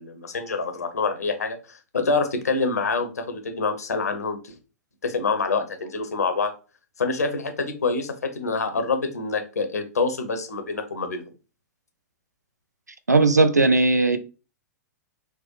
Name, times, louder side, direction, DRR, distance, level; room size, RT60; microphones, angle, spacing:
voice 1, 0.0-4.5 5.0-6.5 7.0-11.2, left 4 dB, 75° left, 0.7 m, -26 dB
voice 2, 13.1-14.2, right 3 dB, 90° right, 0.4 m, -17 dB
4.3 x 2.1 x 3.1 m
figure-of-eight pair, 105°, 9 cm